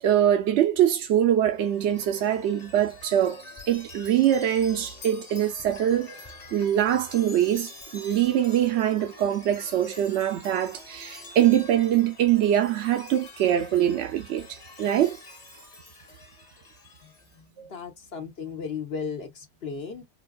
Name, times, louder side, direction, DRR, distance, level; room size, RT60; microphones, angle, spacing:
voice 1, 0.0-15.2 17.6-17.7, right 11 dB, 75° right, 0.9 m, -23 dB
Chime, 1.5-17.4, left 3 dB, 35° left, 1.4 m, -46 dB
voice 2, 17.0-20.0, left 6 dB, 60° left, 1.2 m, -36 dB
4.3 x 2.4 x 2.2 m
omnidirectional pair, 1.2 m